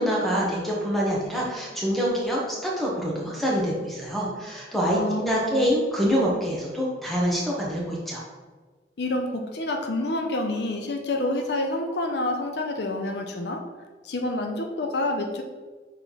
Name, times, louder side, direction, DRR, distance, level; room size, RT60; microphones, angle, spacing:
voice 1, 0.0-8.2, equal, ahead, -4 dB, 1.2 m, -25 dB
voice 2, 4.9-5.7 9.0-13.6 14.0-15.4, left 2 dB, 70° left, 4 dB, 0.6 m, -28 dB
5.8 x 4.3 x 4.1 m, 1.4 s
head